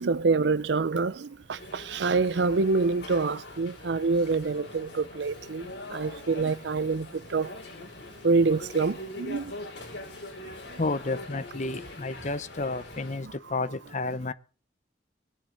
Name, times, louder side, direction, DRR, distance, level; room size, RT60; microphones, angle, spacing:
voice 1, 0.0-7.5 8.2-9.5, right 4 dB, 70° right, 0.5 m, -26 dB
sound 1, 1.6-13.2, left 2 dB, 65° left, 5.9 m, -43 dB
voice 2, 10.8-14.3, left 3 dB, 40° left, 0.9 m, -31 dB
20.0 x 10.5 x 4.0 m
head